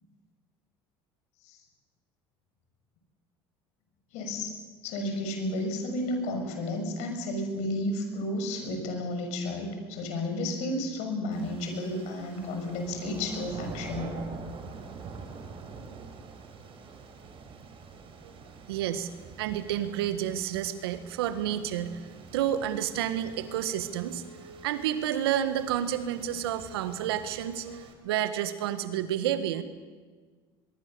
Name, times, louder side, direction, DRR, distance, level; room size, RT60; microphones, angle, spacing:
voice 1, 4.1-4.5 4.8-14.2, left 1 dB, 65° left, 4 dB, 6.6 m, -32 dB
sound 1, 11.3-27.9, right 5 dB, 45° right, 4.4 m, -46 dB
voice 2, 18.7-19.1 19.4-22.1 22.3-29.6, right 11 dB, 80° right, 11 dB, 1.6 m, -30 dB
23.0 x 22.0 x 6.9 m, 1.4 s
hypercardioid pair, 75°, 13 cm